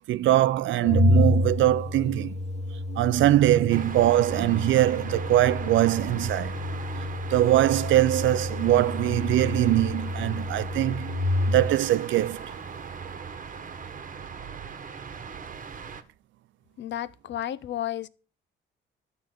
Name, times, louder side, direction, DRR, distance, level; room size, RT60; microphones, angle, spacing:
voice 1, 0.1-2.4 3.0-6.5 7.3-11.1 11.5-12.5, right 14 dB, 75° right, 0.5 m, -22 dB
Organ, 0.8-11.8, left 2 dB, 35° left, 1.5 m, -29 dB
sound 1, 3.7-16.0, right 6 dB, 40° right, 1.2 m, -39 dB
voice 2, 16.8-18.1, left 11 dB, 65° left, 0.7 m, -32 dB
11.5 x 3.9 x 7.6 m
cardioid pair, 90°, 20 cm